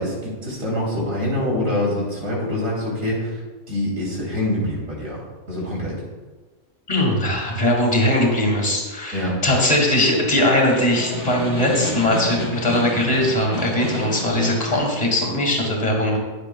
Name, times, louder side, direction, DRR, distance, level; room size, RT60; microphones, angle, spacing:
voice 1, 0.0-3.4 3.7-5.2 5.5-6.0 9.1-9.4, left 1 dB, 85° right, -4 dB, 3.4 m, -25 dB
voice 2, 6.9-16.2, left 1 dB, 30° left, -1 dB, 2.2 m, -20 dB
Snare drum, 10.1-15.0, left 2 dB, 65° left, 2.2 m, -30 dB
18.5 x 7.3 x 2.2 m, 1.3 s
omnidirectional pair, 1.3 m